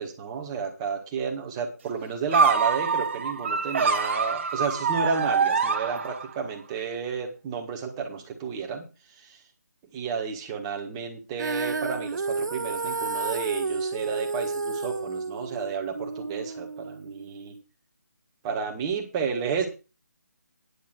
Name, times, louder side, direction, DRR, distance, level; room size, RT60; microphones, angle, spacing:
voice 1, 0.0-8.9 9.2-9.4 9.9-17.6 18.4-19.7, right 6 dB, 15° right, 3 dB, 1.7 m, -31 dB
sound 1, 2.3-6.5, right 5 dB, 40° right, 1.2 m, -25 dB
Female singing, 11.4-17.6, right 4 dB, 85° right, 0.6 m, -31 dB
10.0 x 5.8 x 7.7 m, 0.31 s
figure-of-eight pair, 165°, 10 cm